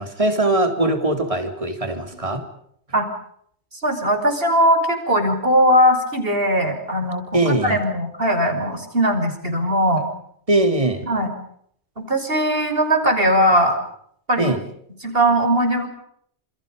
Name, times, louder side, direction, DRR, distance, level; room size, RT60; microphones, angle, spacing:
voice 1, 0.0-2.4 7.3-7.8 10.5-11.0 14.4-14.6, right 2 dB, 30° right, 6 dB, 3.5 m, -21 dB
voice 2, 3.8-10.1 11.1-11.3 12.0-13.8 14.3-14.6 15.0-15.9, equal, 55° right, 6 dB, 6.4 m, -19 dB
29.5 x 28.5 x 5.3 m, 0.67 s
omnidirectional pair, 1.2 m